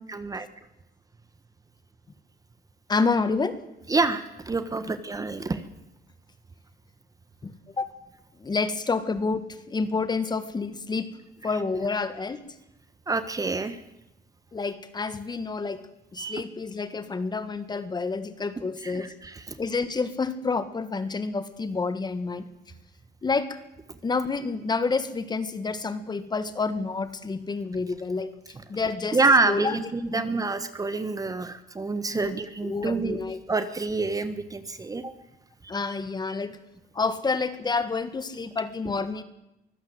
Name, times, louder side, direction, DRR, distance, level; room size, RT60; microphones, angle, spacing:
voice 1, 0.1-0.5 3.9-5.6 13.1-13.8 16.2-16.4 18.8-19.6 29.1-33.2 33.5-35.1, right 3 dB, 20° right, 12 dB, 1.4 m, -27 dB
voice 2, 2.9-3.6 7.4-7.9 8.4-11.1 11.4-12.4 14.5-15.8 16.1-19.1 19.6-22.5 23.2-23.6 24.0-28.3 28.7-29.2 29.5-29.8 30.1-30.2 32.1-32.3 32.6-33.4 35.7-36.6 37.0-39.2, left 4 dB, 25° left, 12 dB, 1.7 m, -28 dB
24.0 x 16.0 x 8.1 m, 0.89 s
cardioid pair, 110°, 17 cm